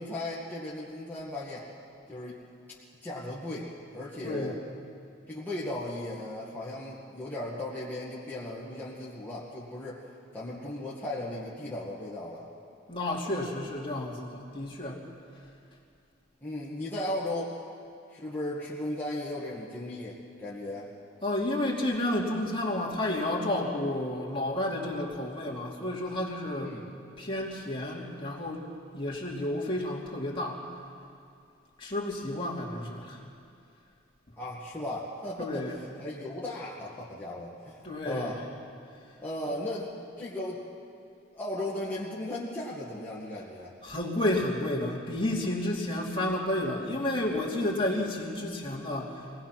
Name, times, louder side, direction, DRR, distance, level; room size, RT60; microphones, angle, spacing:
voice 1, 0.0-1.7 2.1-2.4 3.0-4.6 5.3-10.0 10.3-12.5 16.4-17.6 18.1-20.9 26.6-26.9 34.4-37.8 38.0-38.4 39.2-40.6 41.3-43.8, left 1 dB, 10° left, -8 dB, 2.0 m, -36 dB
voice 2, 4.2-4.5 12.9-15.0 21.2-26.8 27.2-28.6 28.9-30.6 31.8-33.2 35.4-35.8 37.8-38.4 39.5-39.6 43.8-49.3, left 1 dB, 25° left, -3 dB, 2.8 m, -31 dB
24.0 x 18.5 x 6.0 m, 2.5 s
head